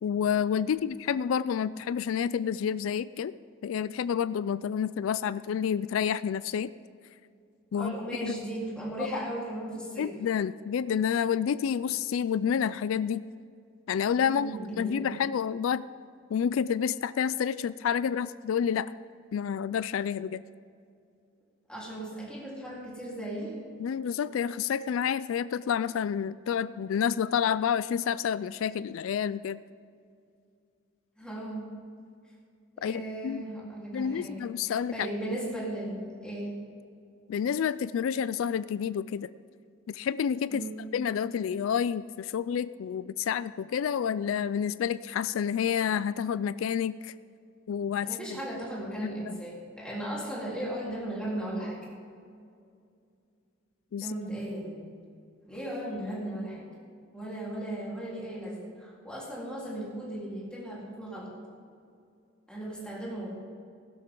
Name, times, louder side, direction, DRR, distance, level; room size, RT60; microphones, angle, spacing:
voice 1, 0.0-3.3 3.6-6.7 7.7-7.9 8.2-8.3 10.0-13.2 13.9-15.8 16.3-18.9 19.3-20.4 23.8-29.6 32.8-33.4 33.9-35.0 37.3-39.3 39.9-40.6 40.9-47.1 47.7-48.1 49.0-49.4 53.9-54.1, left 8 dB, 75° left, 16 dB, 0.3 m, -29 dB
voice 2, 7.8-10.1 14.2-15.1 21.7-23.6 31.2-31.7 32.8-36.5 40.5-40.7 48.0-51.9 54.0-54.8 55.5-56.7 57.1-61.3 62.5-63.3, right 1 dB, 5° left, -6 dB, 3.8 m, -36 dB
16.0 x 12.5 x 3.8 m, 2.4 s
head